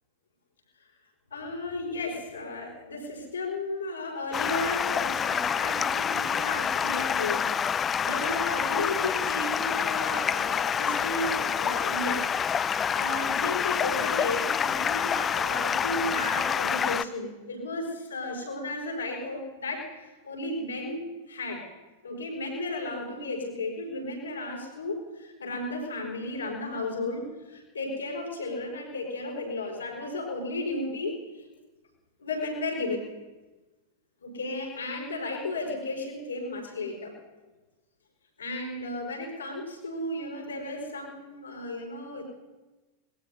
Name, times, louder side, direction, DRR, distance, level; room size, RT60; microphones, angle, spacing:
voice 1, 1.3-7.5 8.0-21.7 22.0-31.5 32.2-33.1 34.2-37.1 38.4-42.2, left 2 dB, 70° left, -1 dB, 4.8 m, -34 dB
Stream, 4.3-17.0, left 7 dB, 20° left, 0.4 m, -27 dB
24.5 x 20.5 x 2.8 m, 1.2 s
figure-of-eight pair, 90°, 0 cm